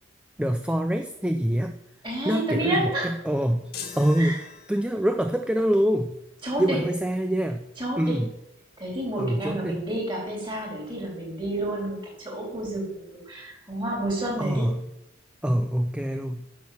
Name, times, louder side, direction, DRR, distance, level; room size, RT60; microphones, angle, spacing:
voice 1, 0.4-1.8 2.3-4.4 4.7-6.2 6.6-7.7 8.0-8.3 9.2-9.8 14.4-14.9 15.4-16.5, equal, 5° right, 7 dB, 0.4 m, -25 dB
voice 2, 2.0-3.1 4.2-4.4 6.4-6.8 7.8-8.2 8.8-14.7, right 1 dB, 25° right, -1 dB, 3.8 m, -30 dB
sound 1, 3.7-5.2, left 7 dB, 50° left, 1.6 m, -41 dB
10.5 x 6.4 x 7.0 m, 0.88 s
head